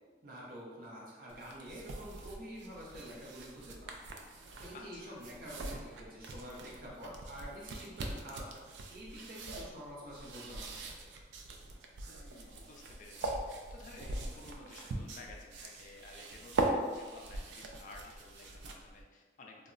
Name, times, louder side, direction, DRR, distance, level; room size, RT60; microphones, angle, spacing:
voice 1, 0.2-3.9 4.6-8.6 8.9-11.1, equal, 55° right, -4 dB, 0.7 m, -48 dB
sound 1, 1.3-19.0, right 2 dB, 75° right, 0.3 m, -41 dB
voice 2, 4.7-5.2 12.1-19.7, left 3 dB, 45° left, 0 dB, 0.3 m, -53 dB
2.1 x 2.0 x 3.7 m, 1.4 s
head